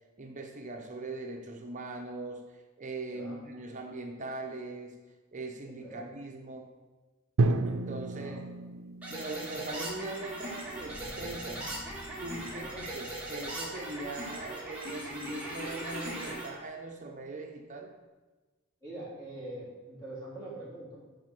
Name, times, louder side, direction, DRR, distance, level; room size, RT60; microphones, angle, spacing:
voice 1, 0.2-5.0 5.3-6.7 7.6-8.4 9.1-11.7 12.2-17.9, right 2 dB, 35° right, 3 dB, 0.7 m, -41 dB
voice 2, 5.6-6.1 8.1-8.4 12.5-12.8 18.8-21.0, right 1 dB, 20° left, -7 dB, 3.1 m, -44 dB
Drum, 7.4-11.4, right 3 dB, 70° right, 0.5 m, -32 dB
sound 1, 9.0-16.5, right 1 dB, 5° right, 2.0 m, -39 dB
sound 2, 10.7-15.2 15.7-15.8, equal, 65° left, 2.0 m, -51 dB
7.8 x 4.9 x 6.0 m, 1.2 s
head